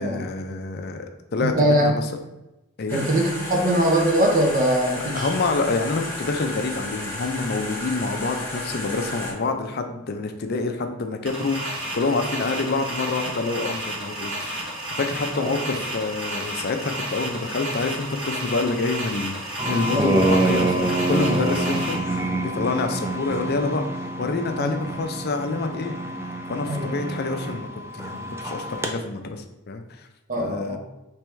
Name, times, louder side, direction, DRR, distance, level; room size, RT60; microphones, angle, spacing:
voice 1, 0.0-2.1 2.8-3.0 5.1-14.7 15.0-23.9 24.2-25.9 26.5-27.7 27.9-30.1 30.4-30.8, left 3 dB, 50° left, 6 dB, 0.5 m, -27 dB
voice 2, 1.4-1.9 2.9-5.3 15.4-15.5 19.9-20.2 24.6-24.7 26.6-26.9 30.3-30.8, right 1 dB, 40° right, 0 dB, 0.7 m, -22 dB
sound 1, 2.9-9.3, left 1 dB, 10° left, 1.1 m, -33 dB
sound 2, 11.3-21.9, right 1 dB, 60° right, 1.4 m, -32 dB
sound 3, 19.6-28.9, right 2 dB, 10° right, 0.3 m, -26 dB
3.4 x 3.3 x 4.6 m, 0.97 s
head